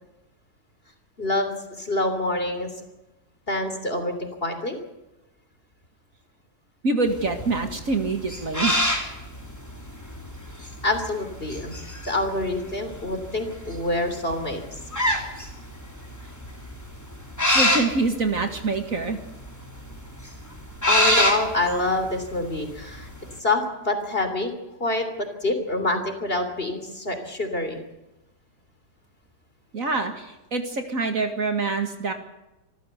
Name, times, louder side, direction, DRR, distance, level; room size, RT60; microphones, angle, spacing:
voice 1, 1.2-2.8 3.5-4.8 10.8-11.8 12.0-14.8 20.9-23.1 23.4-24.5 24.8-27.8, left 2 dB, 35° left, 6 dB, 3.4 m, -26 dB
voice 2, 6.8-8.7 17.5-19.2 29.7-32.1, right 3 dB, 50° right, 6 dB, 2.4 m, -25 dB
sound 1, 7.1-23.3, left 1 dB, 10° left, 3.1 m, -27 dB
26.0 x 14.5 x 8.2 m, 0.97 s
omnidirectional pair, 1.8 m